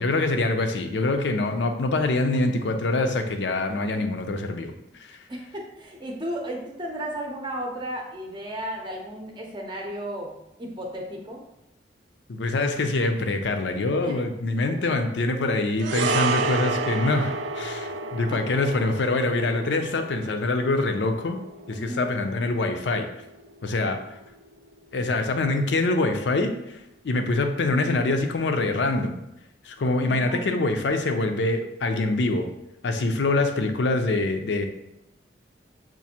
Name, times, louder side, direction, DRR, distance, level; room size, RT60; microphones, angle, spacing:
voice 1, 0.0-4.7 5.0-5.2 12.3-21.4 21.7-23.1 23.6-24.0 24.9-26.8 27.0-29.2 29.6-32.5 32.8-34.7, left 2 dB, 80° left, 6 dB, 0.5 m, -25 dB
voice 2, 5.3-11.4 14.0-14.2 17.9-18.0 18.3-18.4 19.5-19.9 21.7-22.1 30.0-30.5, right 1 dB, 25° right, 0 dB, 0.6 m, -35 dB
sound 1, 15.8-24.3 24.5-24.7, right 3 dB, 85° right, 0.4 m, -31 dB
5.9 x 2.5 x 2.8 m, 0.86 s
head